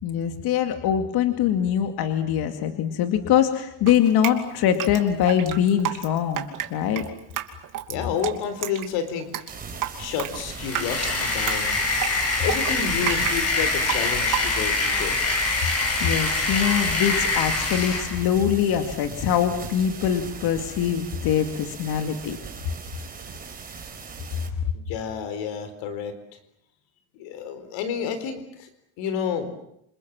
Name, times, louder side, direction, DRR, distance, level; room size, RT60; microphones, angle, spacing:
voice 1, 0.0-6.5 6.7-7.1 16.0-22.4, left 9 dB, 55° left, 7 dB, 2.3 m, -23 dB
Drip, 3.9-14.8, right 11 dB, 45° right, 3.0 m, -32 dB
voice 2, 7.9-9.4 10.0-11.8 12.4-15.2 24.7-26.1 27.1-28.7 29.0-29.5, left 7 dB, 80° left, 10 dB, 4.3 m, -30 dB
sound 1, 9.5-24.5, right 5 dB, 20° right, 4.3 m, -39 dB
sound 2, 10.5-18.2, left 3 dB, 35° left, 7.7 m, -25 dB
28.0 x 27.5 x 7.5 m, 0.76 s
cardioid pair, 155°, 44 cm